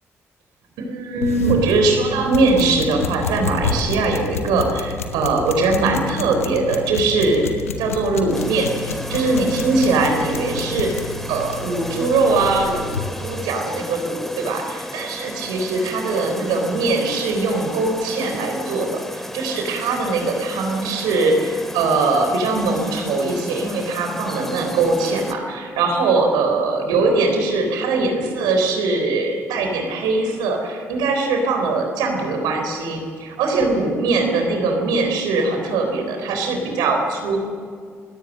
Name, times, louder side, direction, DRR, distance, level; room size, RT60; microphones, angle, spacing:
voice 1, 0.8-7.4 7.8-8.7 9.1-37.4, right 3 dB, 70° right, 3 dB, 3.8 m, -21 dB
sound 1, 1.2-13.1, left 5 dB, 90° left, 1.0 m, -29 dB
sound 2, 8.3-25.3, equal, 5° left, 2.4 m, -34 dB
29.5 x 17.0 x 6.5 m, 2.1 s
figure-of-eight pair, 40°, 7 cm